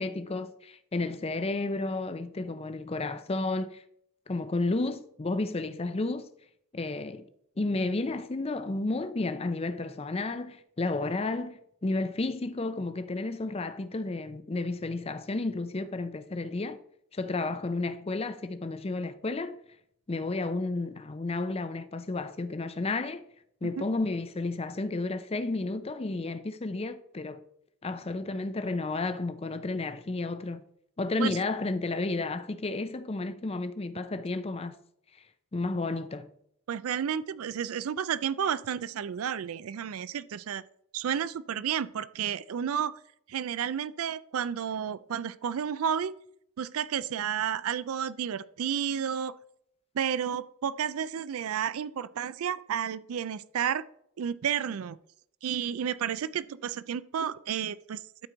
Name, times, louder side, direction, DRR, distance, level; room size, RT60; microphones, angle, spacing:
voice 1, 0.0-3.8 4.3-6.3 6.7-7.3 7.6-16.8 17.1-19.6 20.1-23.2 23.6-27.4 27.8-30.6 31.0-34.8 35.5-36.3, left 2 dB, 25° left, 0.5 m, -32 dB
voice 2, 36.7-40.6 40.9-43.0 43.3-46.1 46.6-49.4 49.9-53.8 54.2-55.0 55.4-58.0, right 8 dB, 70° right, 0.4 m, -31 dB
12.5 x 4.4 x 3.9 m
head